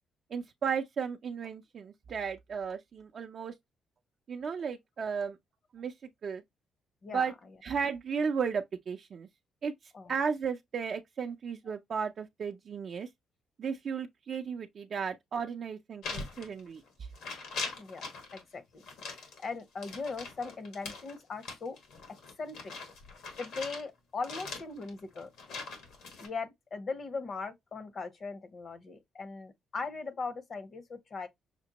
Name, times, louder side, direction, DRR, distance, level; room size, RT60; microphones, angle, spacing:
voice 1, 0.3-3.5 4.3-5.4 5.7-5.9 6.2-6.4 7.1-7.3 7.6-9.3 9.6-9.7 10.1-13.1 13.6-16.8, right 6 dB, 55° right, 0.4 m, -34 dB
sound 1, 16.0-16.9 17.1-18.4 18.8-23.9 24.2-26.3, left 4 dB, 85° left, 1.4 m, -42 dB
voice 2, 18.3-18.8 19.4-21.8 22.4-22.7 23.4-25.3 26.2-31.3, left 4 dB, 50° left, 0.7 m, -39 dB
5.8 x 2.1 x 2.9 m
cardioid pair, 90°, 0 cm